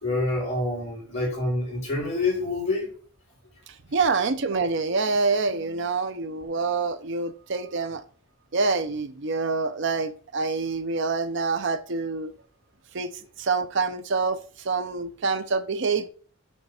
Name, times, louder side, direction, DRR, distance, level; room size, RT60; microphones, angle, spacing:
voice 1, 0.0-2.9, left 2 dB, 30° left, 3.9 m, -27 dB
voice 2, 3.9-8.0 8.5-12.3 12.9-13.1 13.4-16.1, right 4 dB, 60° right, 0.6 m, -26 dB
6.5 x 3.3 x 5.7 m
head